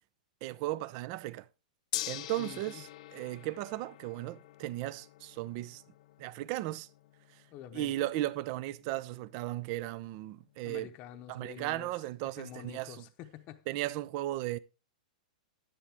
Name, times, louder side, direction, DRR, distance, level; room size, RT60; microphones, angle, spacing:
voice 1, 0.4-1.5 2.1-5.8 6.2-6.9 7.7-10.9 11.3-13.0 13.7-14.6, right 16 dB, 40° right, 0.6 m, -36 dB
Gong, 1.9-12.1, left 15 dB, 55° left, 0.6 m, -46 dB
voice 2, 2.4-2.8 7.5-8.1 10.6-13.7, left 12 dB, 35° left, 0.9 m, -48 dB
11.0 x 10.0 x 3.5 m
hypercardioid pair, 150°, 4 cm